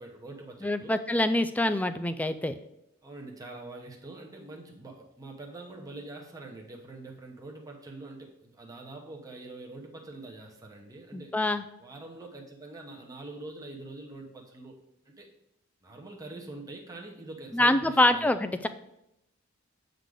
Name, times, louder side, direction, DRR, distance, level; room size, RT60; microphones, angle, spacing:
voice 1, 0.0-1.0 3.0-11.3 11.8-14.8 15.0-15.3 15.8-18.3, right 2 dB, 15° right, 0 dB, 0.9 m, -44 dB
voice 2, 0.6-2.5 11.1-11.6 17.5-18.7, left 1 dB, 5° left, 10 dB, 0.3 m, -25 dB
8.1 x 3.9 x 4.8 m, 0.84 s
head